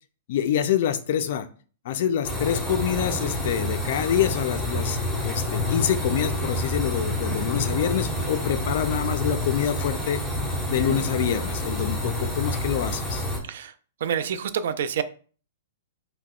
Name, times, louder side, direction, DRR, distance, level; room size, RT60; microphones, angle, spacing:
voice 1, 0.3-1.5 1.9-10.2 10.7-13.2, left 9 dB, 50° left, 11 dB, 0.3 m, -26 dB
sound 1, 2.2-13.4, left 1 dB, 5° left, 0.7 m, -28 dB
sound 2, 6.8-12.0, right 2 dB, 35° right, 1.1 m, -42 dB
voice 2, 14.0-15.0, right 8 dB, 65° right, 13 dB, 0.3 m, -27 dB
2.8 x 2.1 x 3.6 m, 0.41 s
hypercardioid pair, 160°, 0 cm